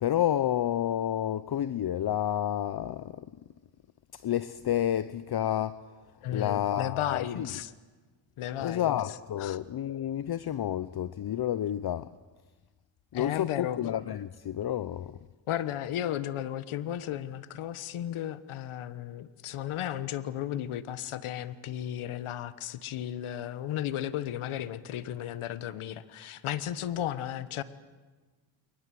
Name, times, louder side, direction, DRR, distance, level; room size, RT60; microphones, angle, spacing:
voice 1, 0.0-3.3 4.1-5.9 6.3-7.5 8.6-12.1 13.1-15.2, left 11 dB, 50° left, 0.8 m, -30 dB
voice 2, 6.2-7.7 8.4-9.6 13.1-13.8 15.5-27.6, left 11 dB, 80° left, 1.3 m, -34 dB
30.0 x 23.0 x 7.7 m
cardioid pair, 70°, 49 cm